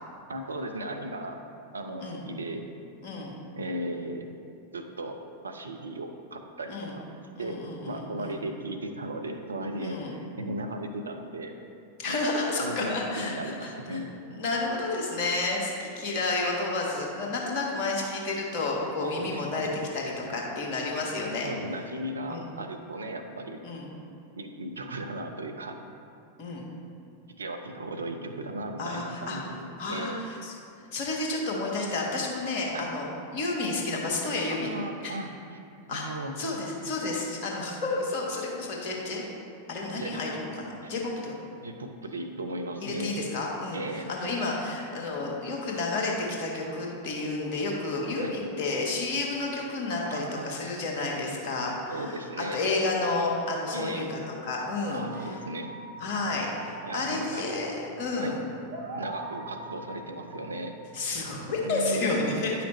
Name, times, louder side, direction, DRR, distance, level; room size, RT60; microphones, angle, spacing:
voice 1, 0.3-1.4 1.7-2.7 3.6-4.3 4.7-6.8 7.4-7.6 7.8-11.5 12.1-12.2 12.6-14.1 19.0-19.7 21.4-23.6 24.3-25.8 27.4-30.2 32.7-32.9 34.5-36.3 39.9-40.1 40.8-41.0 41.6-43.2 43.7-44.1 48.2-48.4 50.0-50.6 51.9-52.6 53.7-54.1 54.9-55.7 56.9-57.4 58.2-58.3 58.9-60.7 61.6-62.3, right 1 dB, 75° right, 5 dB, 0.6 m, -36 dB
voice 2, 3.0-3.4 6.7-7.0 7.3-8.4 9.8-10.1 12.0-14.0 14.3-19.7 19.9-21.5 22.3-22.5 23.6-23.9 26.4-26.7 28.8-29.4 29.8-30.5 30.9-34.7 35.0-35.1 35.9-36.1 36.4-39.2 39.7-41.3 42.8-52.2 52.5-55.3 56.0-58.4 60.9-62.6, left 3 dB, 45° left, -2 dB, 1.4 m, -31 dB
sound 1, 55.1-61.7, right 2 dB, 55° right, 1.0 m, -42 dB
9.6 x 5.8 x 3.1 m, 2.4 s
figure-of-eight pair, 90°, 0 cm